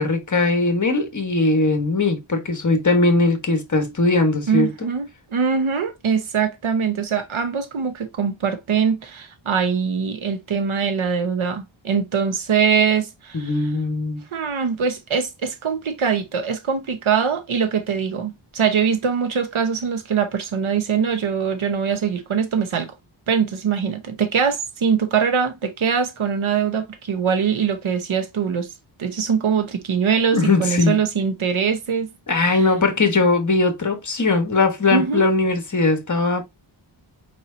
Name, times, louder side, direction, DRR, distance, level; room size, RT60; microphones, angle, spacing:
voice 1, 0.0-4.7 13.3-14.2 30.3-31.0 32.3-36.4, left 3 dB, 40° left, 1.2 m, -20 dB
voice 2, 4.5-5.1 5.3-13.5 14.3-22.9 23.3-28.7 29.0-32.1 32.4-32.6 34.9-35.3, right 6 dB, 90° right, 1.0 m, -22 dB
4.7 x 4.3 x 2.6 m
wide cardioid pair, 110°, 47 cm